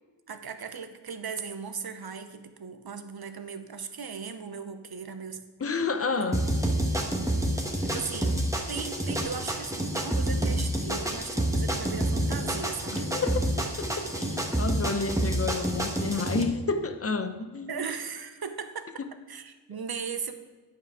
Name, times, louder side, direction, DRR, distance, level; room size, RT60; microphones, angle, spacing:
voice 1, 0.3-5.4 6.2-6.3 7.8-8.4 8.7-13.1 17.7-18.9 19.3-20.3, right 6 dB, 60° right, 8 dB, 0.9 m, -37 dB
voice 2, 5.6-6.5 12.9-17.8, left 4 dB, 30° left, 9 dB, 0.8 m, -30 dB
sound 1, 6.3-16.4, right 1 dB, 5° right, 1.3 m, -28 dB
9.3 x 5.6 x 4.8 m, 1.3 s
cardioid pair, 50°, 43 cm